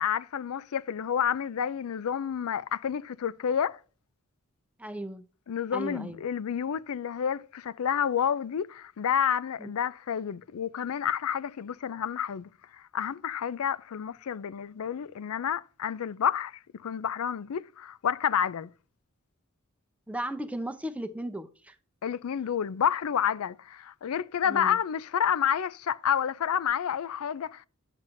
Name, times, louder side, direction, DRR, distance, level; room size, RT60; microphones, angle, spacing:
voice 1, 0.0-3.8 5.5-18.7 22.0-27.7, left 8 dB, 75° left, 0.4 m, -29 dB
voice 2, 4.8-5.2 5.7-6.2 9.6-9.7 20.1-21.8 24.5-24.8, right 1 dB, 5° right, 0.6 m, -36 dB
8.9 x 7.4 x 2.6 m
head